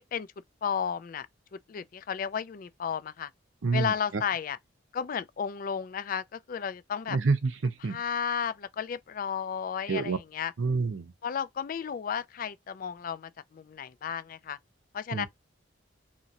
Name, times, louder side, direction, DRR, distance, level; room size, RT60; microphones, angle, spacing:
voice 1, 0.6-1.3 1.5-3.3 3.7-4.6 4.9-7.2 7.8-10.5 11.2-14.6 14.9-15.3, left 7 dB, 45° left, 0.3 m, -33 dB
voice 2, 3.6-3.9 7.1-8.0 9.9-10.2 10.6-11.1 15.1-15.3, right 4 dB, 75° right, 0.6 m, -27 dB
2.8 x 2.5 x 2.9 m
head